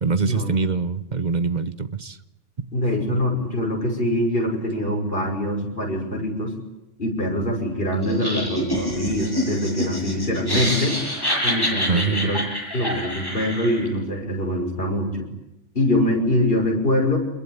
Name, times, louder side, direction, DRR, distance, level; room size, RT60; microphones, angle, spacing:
voice 1, 0.0-2.2 2.6-2.7 3.1-3.2 11.9-12.4, right 4 dB, 40° right, 12 dB, 1.2 m, -24 dB
voice 2, 2.7-6.5 7.0-11.0 11.4-12.4 12.7-15.3 15.7-17.2, left 1 dB, 50° left, 2 dB, 6.1 m, -24 dB
Laughter, 8.0-13.9, equal, 20° left, 8.0 m, -27 dB
26.5 x 22.0 x 9.5 m, 0.92 s
omnidirectional pair, 1.2 m